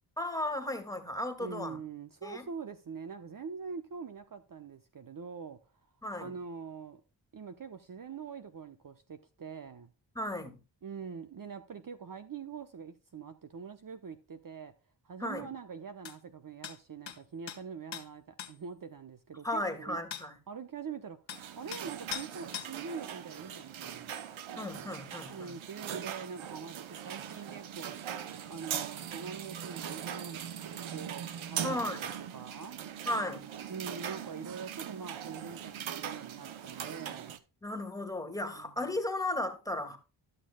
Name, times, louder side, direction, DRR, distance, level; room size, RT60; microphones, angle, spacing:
voice 1, 0.2-1.8 2.2-2.4 6.0-6.3 10.2-10.6 15.2-15.5 19.4-20.4 24.6-25.6 31.6-32.1 33.0-33.5 37.6-40.0, left 1 dB, 5° left, 2.1 m, -35 dB
voice 2, 1.4-5.6 6.2-7.0 7.3-9.9 10.8-14.7 15.0-20.0 20.5-21.2 21.6-24.2 25.3-28.0 28.5-31.9 32.3-32.8 33.7-37.4 38.6-38.9, right 6 dB, 45° right, 0.9 m, -44 dB
sound 1, 16.0-16.2 16.6-16.8 17.1-17.2 17.5-17.6 17.9-18.1 18.4-18.5 20.1-20.3 21.3-21.4 21.7-21.8 22.1-22.3 22.5-22.7, left 9 dB, 70° left, 1.3 m, -40 dB
sound 2, 21.3-37.4, right 9 dB, 80° right, 0.9 m, -41 dB
13.0 x 6.6 x 2.2 m
cardioid pair, 45°, 46 cm